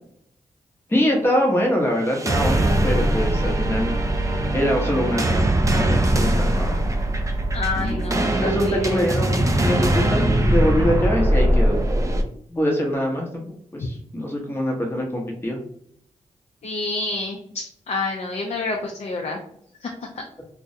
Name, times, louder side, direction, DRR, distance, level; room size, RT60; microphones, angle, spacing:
voice 1, 0.9-3.9 4.5-5.4 5.7-6.8 7.8-11.8 12.5-15.6, equal, 15° left, 0 dB, 0.7 m, -24 dB
sound 1, 2.1-12.2, right 1 dB, 25° right, 0.4 m, -21 dB
voice 2, 7.5-9.0 16.6-19.4 19.8-19.9, left 3 dB, 50° left, 1 dB, 0.4 m, -28 dB
2.2 x 2.0 x 2.7 m, 0.68 s
supercardioid pair, 40°, 14 cm